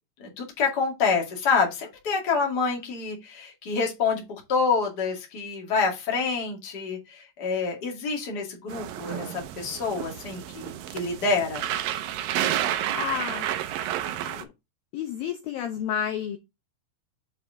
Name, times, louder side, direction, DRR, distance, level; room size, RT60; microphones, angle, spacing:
voice 1, 0.2-11.6, left 5 dB, 30° left, 2.0 m, -27 dB
sound 1, 8.7-14.4, right 11 dB, 75° right, 2.2 m, -30 dB
voice 2, 12.9-13.5 14.3-14.5 14.9-16.4, left 9 dB, 75° left, 2.3 m, -30 dB
7.3 x 4.6 x 3.7 m
omnidirectional pair, 4.8 m